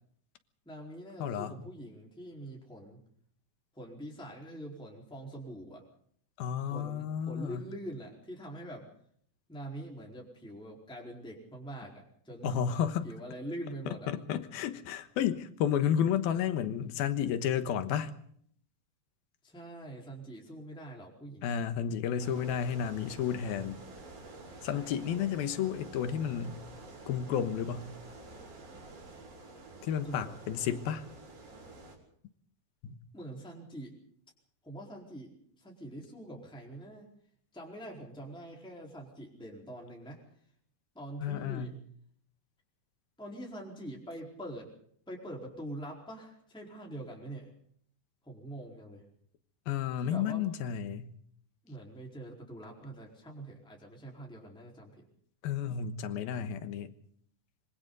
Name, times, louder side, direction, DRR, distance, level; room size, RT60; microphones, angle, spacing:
voice 1, 0.7-3.0 3.7-5.8 6.6-8.9 9.5-12.7 13.0-14.1 19.4-21.6 24.7-25.2 30.0-30.4 33.1-33.9 34.6-37.1 37.5-40.2 40.9-41.7 43.2-44.7 45.1-47.5 48.2-49.0 50.0-50.5 51.6-55.0, right 1 dB, ahead, -2 dB, 4.1 m, -44 dB
voice 2, 1.2-1.6 6.4-7.6 12.4-13.1 13.9-18.1 21.4-23.8 24.6-26.6 27.1-27.9 29.8-31.0 32.8-33.0 41.2-41.7 49.7-51.1 55.4-56.9, left 9 dB, 80° left, 10 dB, 3.1 m, -32 dB
sound 1, 22.2-32.0, right 2 dB, 60° right, 6.9 m, -49 dB
25.5 x 25.0 x 4.1 m, 0.64 s
omnidirectional pair, 4.2 m